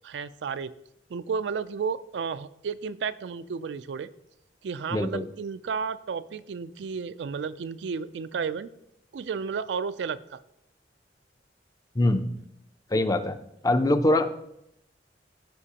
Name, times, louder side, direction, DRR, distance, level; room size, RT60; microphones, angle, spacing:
voice 1, 0.0-0.7 1.1-4.1 4.6-8.7 9.1-10.4, right 6 dB, 85° right, 14 dB, 0.4 m, -32 dB
voice 2, 4.9-5.2 12.0-12.3 12.9-13.4 13.6-14.3, left 1 dB, 20° left, 9 dB, 0.5 m, -23 dB
14.5 x 5.4 x 2.9 m, 0.79 s
head